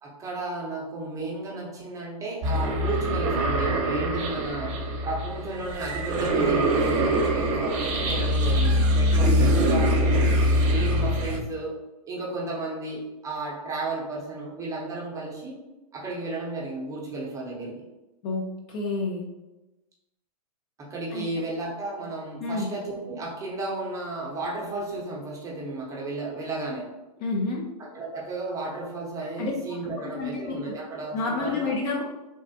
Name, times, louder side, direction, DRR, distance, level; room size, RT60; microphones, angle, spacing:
voice 1, 0.0-4.7 5.0-10.2 10.6-11.7 12.0-15.5 15.9-17.8 20.8-26.9 27.8-31.7, right 2 dB, 15° right, -3 dB, 0.7 m, -33 dB
sound 1, 2.4-11.4, equal, 55° right, 0.7 m, -23 dB
voice 2, 18.2-19.3 21.1-21.2 22.4-22.7 27.2-27.7 29.4-29.5 29.8-29.9 30.2-30.6 31.1-32.0, left 3 dB, 35° left, 1 dB, 0.4 m, -29 dB
3.3 x 2.0 x 2.7 m, 1.0 s
hypercardioid pair, 125°, 20 cm